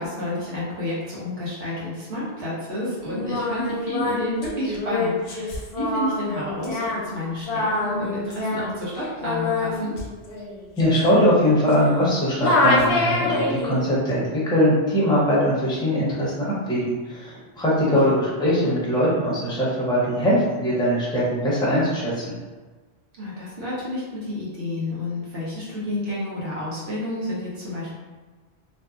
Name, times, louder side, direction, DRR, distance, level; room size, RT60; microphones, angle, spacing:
voice 1, 0.0-9.9 18.0-18.1 23.2-27.9, left 1 dB, 65° right, -7 dB, 1.1 m, -30 dB
Singing, 3.1-12.1 12.4-13.8, left 2 dB, 65° left, 0.7 m, -26 dB
voice 2, 10.8-22.3, equal, 5° left, -7 dB, 0.6 m, -21 dB
2.6 x 2.5 x 2.4 m, 1.3 s
omnidirectional pair, 1.1 m